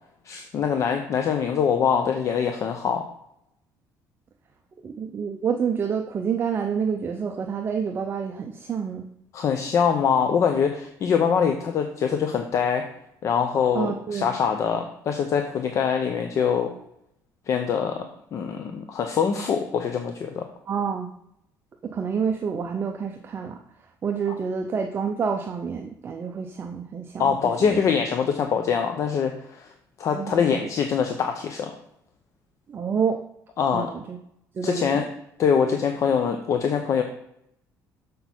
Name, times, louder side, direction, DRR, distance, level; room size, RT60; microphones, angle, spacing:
voice 1, 0.2-3.0 9.3-12.9 13.2-16.7 17.5-18.0 18.3-20.4 27.2-29.7 30.0-31.7 33.6-33.9 34.6-35.1 35.4-37.0, left 7 dB, 45° left, 5 dB, 0.7 m, -24 dB
voice 2, 4.8-9.1 13.7-14.3 20.7-21.1 21.8-23.6 24.0-27.3 27.6-28.0 30.1-30.7 32.7-33.2 33.7-34.2 34.5-35.0, right 6 dB, 30° right, 4 dB, 0.6 m, -28 dB
6.9 x 6.2 x 4.4 m, 0.75 s
cardioid pair, 135°, 7 cm